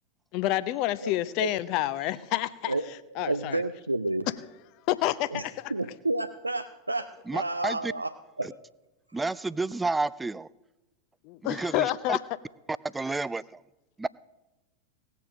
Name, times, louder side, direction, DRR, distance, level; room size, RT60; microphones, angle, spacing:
voice 1, 0.3-2.7 3.2-3.6 4.9-5.7 11.2-12.2, left 15 dB, 40° left, 16 dB, 0.6 m, -28 dB
voice 2, 3.2-4.3 5.3-5.4 5.7-8.5 9.1-9.2, right 2 dB, 85° right, 9 dB, 0.5 m, -30 dB
voice 3, 7.3-7.9 9.1-10.5 11.5-12.2 12.9-13.4 14.0-14.1, right 3 dB, 10° right, 19 dB, 0.3 m, -30 dB
18.0 x 7.0 x 6.2 m, 0.99 s
figure-of-eight pair, 90°, 0 cm